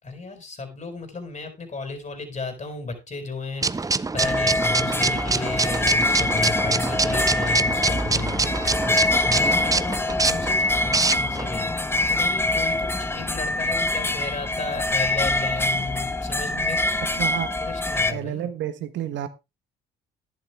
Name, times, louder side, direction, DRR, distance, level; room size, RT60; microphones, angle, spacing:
voice 1, 0.0-17.0 17.6-18.5, left 3 dB, 35° left, 5.9 m, -34 dB
sound 1, 3.6-11.5, right 3 dB, 15° right, 0.6 m, -25 dB
sound 2, 4.2-18.1, left 2 dB, 10° left, 1.1 m, -24 dB
voice 2, 17.1-17.6 18.1-19.3, right 11 dB, 65° right, 1.3 m, -30 dB
11.5 x 11.0 x 3.4 m
hypercardioid pair, 60°, 21 cm